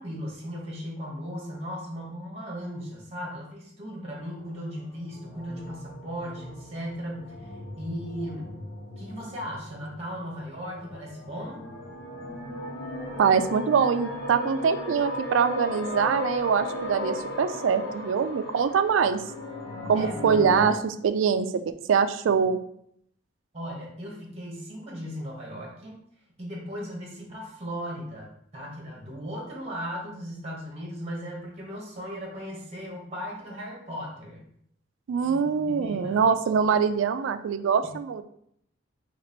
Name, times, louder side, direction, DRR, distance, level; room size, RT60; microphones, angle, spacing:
voice 1, 0.0-8.5 9.0-11.6 19.9-20.5 23.5-26.0 26.4-34.4 35.2-36.2 37.8-37.9, equal, 35° right, -1 dB, 1.1 m, -37 dB
sound 1, 4.1-20.7, left 1 dB, 55° left, 0.9 m, -37 dB
voice 2, 13.2-19.2 19.9-22.6 35.1-38.2, right 6 dB, 80° right, 11 dB, 0.3 m, -24 dB
3.0 x 2.9 x 4.2 m, 0.69 s
head